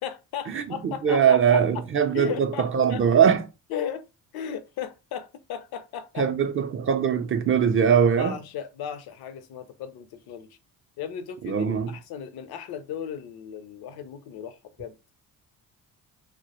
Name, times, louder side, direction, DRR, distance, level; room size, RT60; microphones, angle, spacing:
voice 1, 0.0-1.8 2.1-3.1 3.7-4.1 4.3-6.3 8.2-10.5 11.0-14.9, left 8 dB, 70° left, 0.6 m, -36 dB
voice 2, 0.5-3.5 6.2-8.4 11.4-11.9, right 7 dB, 35° right, 0.4 m, -21 dB
2.1 x 2.1 x 2.8 m
supercardioid pair, 80°, 39 cm